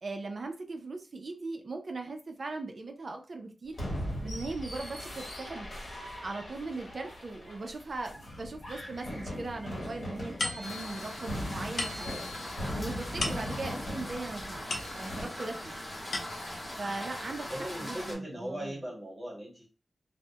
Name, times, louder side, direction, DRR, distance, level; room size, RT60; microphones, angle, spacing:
voice 1, 0.0-3.8 4.2-5.7 6.2-12.2 12.7-15.8 16.8-18.7, right 3 dB, 55° right, 4 dB, 0.4 m, -39 dB
sound 1, 3.7-15.3, equal, 55° left, 1.0 m, -40 dB
sound 2, 10.4-15.4 15.8-16.7, left 2 dB, 75° left, 0.5 m, -39 dB
sound 3, 10.6-18.1, left 1 dB, 30° left, 0.8 m, -41 dB
voice 2, 17.5-19.7, equal, 20° right, -3 dB, 1.1 m, -39 dB
2.2 x 2.0 x 2.7 m, 0.36 s
wide cardioid pair, 130°, 0 cm